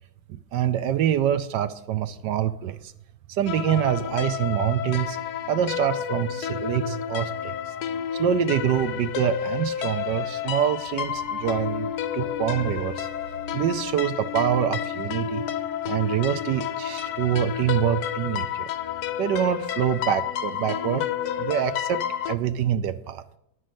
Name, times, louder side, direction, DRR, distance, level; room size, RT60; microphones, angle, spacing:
voice 1, 0.3-2.9 3.3-5.2 5.5-7.5 8.1-11.9 12.1-13.1 13.5-15.4 15.9-18.7 19.2-21.1 21.4-23.2, right 10 dB, 70° right, 11 dB, 1.1 m, -25 dB
sound 1, 3.5-22.4, left 9 dB, 65° left, 1.0 m, -30 dB
9.7 x 6.3 x 7.6 m, 0.77 s
omnidirectional pair, 2.2 m